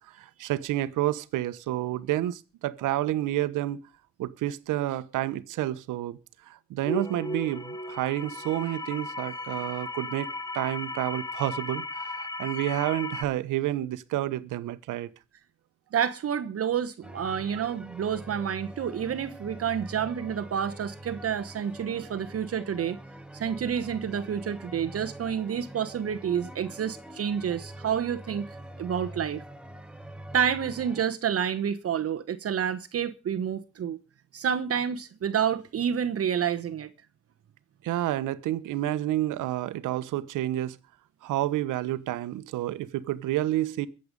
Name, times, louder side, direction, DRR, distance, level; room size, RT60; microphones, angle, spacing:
voice 1, 0.2-3.8 4.2-6.2 6.5-10.3 10.5-15.1 37.8-40.8 41.2-43.9, right 14 dB, 85° right, 1.1 m, -29 dB
sound 1, 6.9-13.2, left 2 dB, 10° left, 1.0 m, -36 dB
voice 2, 15.9-23.0 23.3-28.5 28.8-29.4 30.3-34.0 34.3-36.9, right 8 dB, 50° right, 1.1 m, -29 dB
sound 2, 17.0-31.1, right 1 dB, 5° right, 1.3 m, -44 dB
22.5 x 7.9 x 5.3 m
cardioid pair, 90°, 30 cm